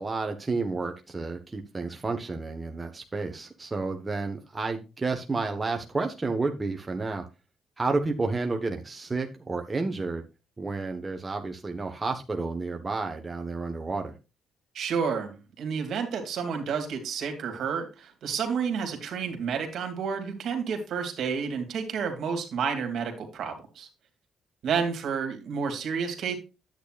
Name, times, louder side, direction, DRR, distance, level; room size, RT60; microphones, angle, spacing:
voice 1, 0.0-7.2 7.8-10.2 10.6-14.2, right 3 dB, 25° right, 1.2 m, -31 dB
voice 2, 14.7-23.9 24.6-26.4, right 6 dB, 70° right, 2.5 m, -30 dB
10.0 x 8.6 x 2.5 m
cardioid pair, 90°, 0 cm